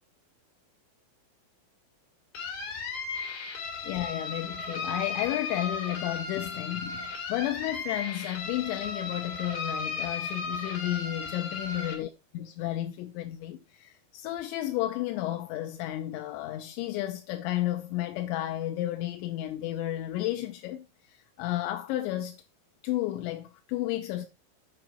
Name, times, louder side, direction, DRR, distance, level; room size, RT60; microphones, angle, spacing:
sound 1, 2.3-11.9, left 4 dB, 60° left, 4.3 m, -35 dB
voice 1, 3.8-22.4 22.8-24.3, left 14 dB, 85° left, 3.0 m, -32 dB
8.8 x 6.0 x 4.3 m
omnidirectional pair, 5.2 m